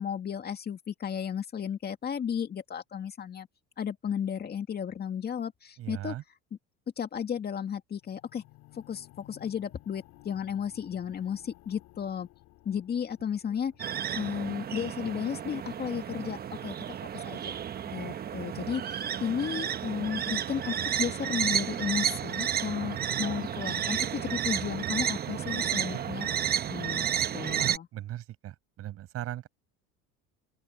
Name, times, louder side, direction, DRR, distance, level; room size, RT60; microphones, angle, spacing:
voice 1, 0.0-3.5 3.8-6.2 7.0-8.4 8.7-12.3 12.6-13.7 14.1-17.6 17.9-26.3 26.7-27.1 27.3-27.9, left 8 dB, 35° left, 2.4 m, -34 dB
voice 2, 5.8-6.2 13.4-13.6 27.6-29.5, right 13 dB, 55° right, 5.6 m, -38 dB
sound 1, 8.0-18.1 18.8-18.9, left 18 dB, 70° left, 3.7 m, -57 dB
sound 2, 13.8-27.8, right 9 dB, 35° right, 1.0 m, -32 dB
open air
cardioid pair, 115°, 29 cm